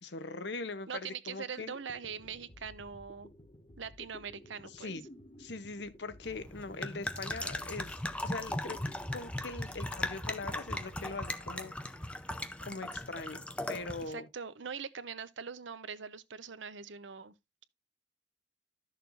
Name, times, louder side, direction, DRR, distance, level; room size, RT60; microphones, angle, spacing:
voice 1, 0.0-1.7 4.7-5.0 5.4-8.8 9.1-11.7 12.0-12.2 12.6-14.3, left 3 dB, 60° left, 0.9 m, -41 dB
voice 2, 0.9-3.3 3.8-4.9 14.1-17.3, right 6 dB, 80° right, 0.7 m, -42 dB
sound 1, 1.6-12.1, equal, 30° left, 1.6 m, -54 dB
sound 2, 6.2-14.1, left 1 dB, 5° left, 0.6 m, -38 dB
13.0 x 6.7 x 2.5 m
head